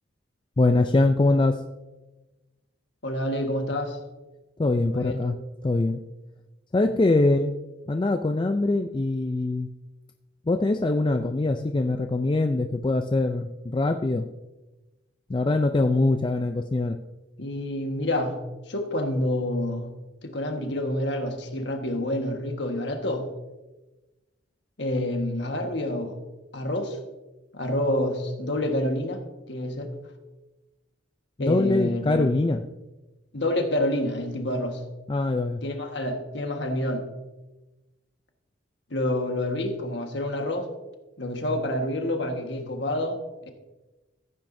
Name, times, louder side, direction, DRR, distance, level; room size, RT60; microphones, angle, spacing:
voice 1, 0.6-1.6 4.6-5.4 5.6-6.0 6.7-7.5 7.9-9.7 10.5-14.3 15.3-17.0 31.4-32.6 35.1-35.6, left 2 dB, 25° left, 6 dB, 0.3 m, -23 dB
voice 2, 3.0-4.0 4.9-5.2 17.4-18.4 18.7-19.9 20.2-23.3 24.8-26.2 26.5-27.0 27.5-29.2 29.5-29.9 31.4-32.3 33.3-34.8 35.6-37.0 38.9-40.7 41.2-43.2, left 1 dB, 60° left, 4 dB, 1.4 m, -28 dB
15.0 x 8.9 x 2.6 m, 1.1 s
head